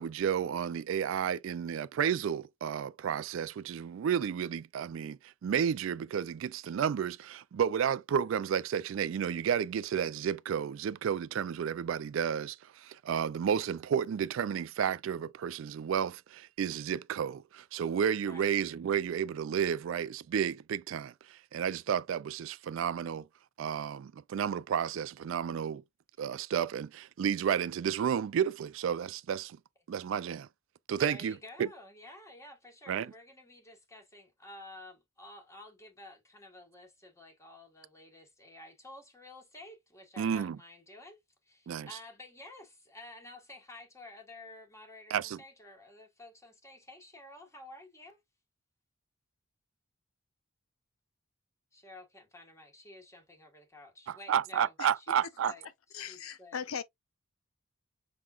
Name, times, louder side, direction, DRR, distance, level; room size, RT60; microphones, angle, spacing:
voice 1, 0.0-23.3 23.6-25.8 26.2-29.6 29.9-30.5 30.9-31.7 32.9-33.1 40.2-40.6 41.7-41.9 45.1-45.4 54.1-55.5, right 8 dB, 70° right, 0.3 m, -32 dB
voice 2, 31.0-41.2 41.4-48.2 51.7-56.6, left 2 dB, 15° left, 1.4 m, -51 dB
voice 3, 55.4-56.8, left 7 dB, 90° left, 0.5 m, -40 dB
6.0 x 3.7 x 2.4 m
head